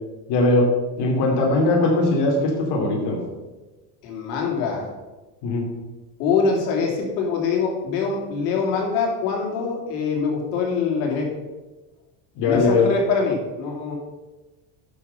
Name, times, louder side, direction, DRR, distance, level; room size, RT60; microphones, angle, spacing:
voice 1, 0.3-0.7 1.0-3.2 5.4-5.7 12.3-12.9, left 2 dB, 60° left, -1 dB, 2.9 m, -20 dB
voice 2, 4.0-4.9 6.2-11.3 12.5-13.9, left 5 dB, 85° left, -1 dB, 3.1 m, -24 dB
9.8 x 6.7 x 5.6 m, 1.2 s
supercardioid pair, 120°, 45 cm